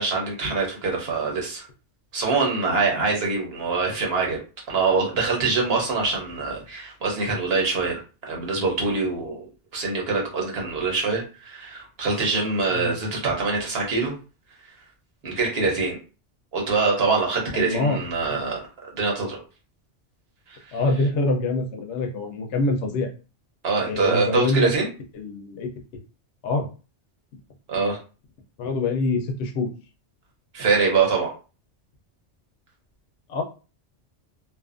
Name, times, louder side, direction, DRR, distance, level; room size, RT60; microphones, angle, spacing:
voice 1, 0.0-1.6 2.1-4.4 4.7-9.5 9.7-14.1 15.2-16.0 16.5-18.6 18.9-19.4 20.5-20.8 23.6-24.9 27.7-28.0 30.5-31.3, right 4 dB, 60° right, -1 dB, 1.1 m, -24 dB
voice 2, 17.5-18.0 20.7-23.1 23.8-24.7 25.1-25.7 26.4-26.7 28.6-29.7 33.3-33.4, left 2 dB, 75° left, 4 dB, 0.9 m, -25 dB
2.6 x 2.4 x 2.4 m, 0.34 s
omnidirectional pair, 1.2 m